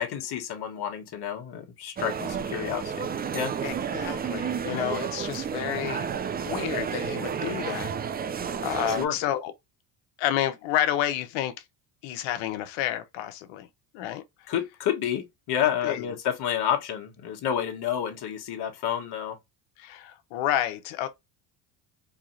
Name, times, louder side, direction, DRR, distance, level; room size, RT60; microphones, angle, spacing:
voice 1, 0.0-3.1 3.3-3.5 8.9-9.2 14.5-19.4, left 9 dB, 55° left, 1.5 m, -29 dB
sound 1, 2.0-9.1, right 7 dB, 20° right, 0.4 m, -31 dB
voice 2, 3.6-6.1 6.4-8.0 8.6-9.5 10.2-11.5 12.0-13.7 13.9-14.5 15.8-16.1 19.8-21.1, left 12 dB, 80° left, 1.0 m, -30 dB
4.7 x 2.8 x 2.6 m
supercardioid pair, 100°, 47 cm